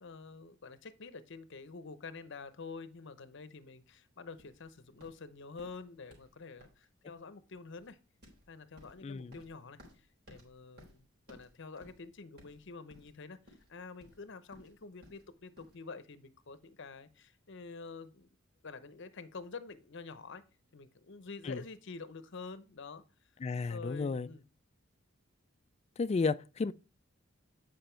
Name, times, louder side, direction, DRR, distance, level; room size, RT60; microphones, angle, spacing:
voice 1, 0.0-8.0 8.5-18.3 18.6-20.4 20.7-23.0 23.7-24.4, left 4 dB, 60° left, 0.7 m, -48 dB
sound 1, 4.4-15.8, left 1 dB, 55° right, 3.7 m, -60 dB
voice 2, 9.0-9.4 21.4-21.6 23.4-24.3 26.0-26.7, left 4 dB, 30° left, 0.3 m, -33 dB
8.9 x 5.1 x 4.4 m
head